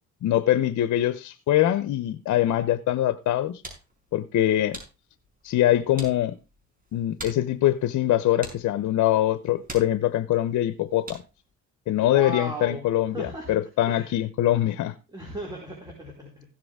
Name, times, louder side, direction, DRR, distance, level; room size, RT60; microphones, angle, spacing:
voice 1, 0.2-3.6 4.1-4.8 5.4-6.4 6.9-11.2 11.9-14.9, left 13 dB, 75° left, 0.7 m, -23 dB
sound 1, 3.2-11.5, right 2 dB, 30° right, 5.5 m, -46 dB
voice 2, 12.0-12.8 13.1-13.5 13.8-14.2 15.1-16.4, right 1 dB, 15° right, 4.6 m, -36 dB
16.0 x 7.7 x 3.6 m
cardioid pair, 90°, 30 cm